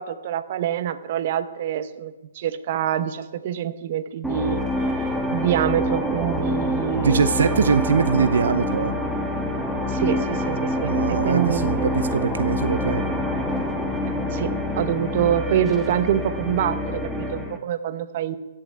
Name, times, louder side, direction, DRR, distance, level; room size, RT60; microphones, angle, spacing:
voice 1, 0.0-4.7 5.3-7.2 9.9-12.0 14.3-18.4, right 10 dB, 45° right, 12 dB, 1.0 m, -26 dB
sound 1, 4.2-17.6, left 1 dB, ahead, 1.4 m, -26 dB
voice 2, 6.9-8.9 10.8-13.0, right 5 dB, 75° right, 13 dB, 0.7 m, -22 dB
15.5 x 7.5 x 8.5 m, 1.2 s
hypercardioid pair, 150°, 0 cm